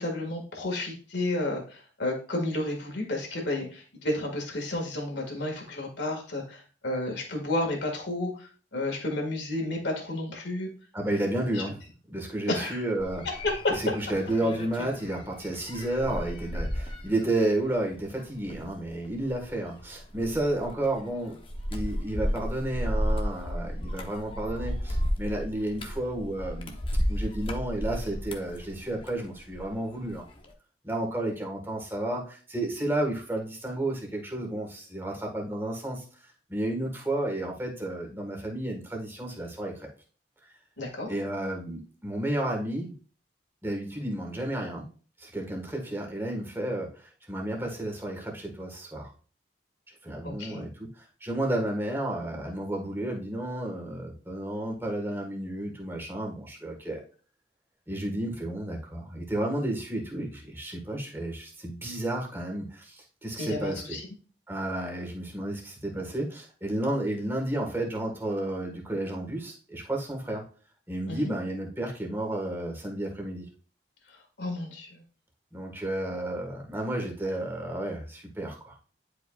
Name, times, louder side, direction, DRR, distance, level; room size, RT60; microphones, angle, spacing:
voice 1, 0.0-10.7 11.5-11.6 12.5-12.8 40.8-41.1 50.2-50.6 63.4-64.0 71.1-71.3 74.1-75.0, left 1 dB, 75° left, 1 dB, 1.9 m, -32 dB
voice 2, 10.9-11.8 12.1-13.3 13.7-21.4 21.7-26.8 27.1-30.3 30.8-36.0 36.5-39.9 41.1-42.9 43.6-44.9 45.2-49.1 50.0-57.0 57.9-64.0 64.5-70.4 70.9-73.5 75.5-78.8, right 1 dB, 15° right, 0 dB, 1.5 m, -32 dB
sound 1, 13.0-29.7 30.0-30.5, equal, 30° left, 0.8 m, -33 dB
10.5 x 4.9 x 2.4 m, 0.38 s
head